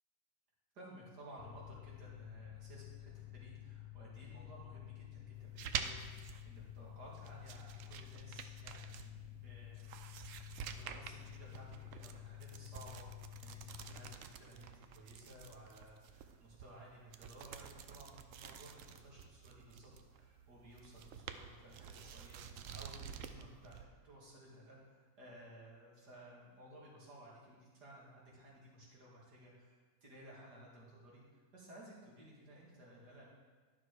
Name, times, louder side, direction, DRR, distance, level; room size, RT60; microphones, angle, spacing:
voice 1, 0.7-10.4 10.7-33.2, right 1 dB, 90° right, -5 dB, 2.8 m, -56 dB
Mechanical fan, 1.4-14.2, left 15 dB, 75° left, 1.0 m, -52 dB
sound 1, 5.4-23.8, right 8 dB, 65° right, 0.8 m, -49 dB
11.5 x 5.8 x 4.8 m, 1.4 s
omnidirectional pair, 1.7 m